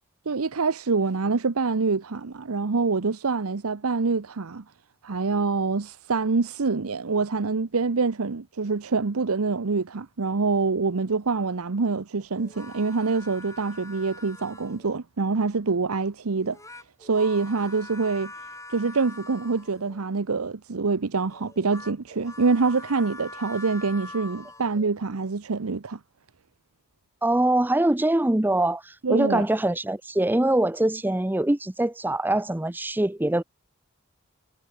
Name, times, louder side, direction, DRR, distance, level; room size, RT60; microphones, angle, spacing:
voice 1, 0.3-4.6 5.0-16.6 17.0-18.3 18.7-26.0 29.0-29.4, right 4 dB, 80° right, 0.8 m, -25 dB
sound 1, 12.4-15.0 16.4-20.1 21.3-24.9, left 2 dB, 15° left, 7.1 m, -44 dB
voice 2, 27.2-33.4, right 1 dB, 10° right, 0.5 m, -23 dB
head